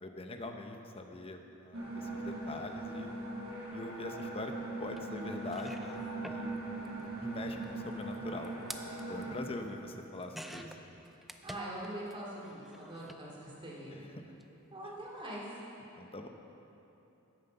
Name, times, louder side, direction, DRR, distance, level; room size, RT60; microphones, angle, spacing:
voice 1, 0.0-3.1 3.7-4.5 4.8-6.0 6.2-6.5 7.2-8.5 9.1-10.8 13.9-14.1 16.0-16.3, left 2 dB, 25° left, 4 dB, 0.8 m, -43 dB
sound 1, 1.7-9.3, right 2 dB, 75° right, 3.0 m, -40 dB
sound 2, 5.0-5.1 5.4-12.1 12.4-13.2 14.2-14.4 14.7-14.8, equal, ahead, 0.4 m, -50 dB
voice 2, 11.4-14.1 14.7-15.4, right 1 dB, 25° right, -5 dB, 2.9 m, -43 dB
14.0 x 9.3 x 5.5 m, 3.0 s
head